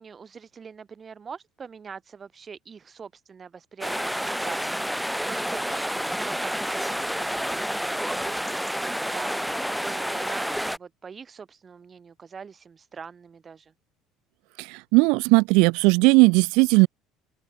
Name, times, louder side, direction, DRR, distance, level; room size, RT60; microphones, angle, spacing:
voice 1, 0.0-4.2 4.4-5.0 5.2-13.7, right 6 dB, 30° right, 5.9 m, -43 dB
sound 1, 3.8-10.8, equal, ahead, 2.7 m, -29 dB
voice 2, 14.6-16.9, right 29 dB, 80° right, 1.3 m, -18 dB
open air
cardioid pair, 120°, 0 cm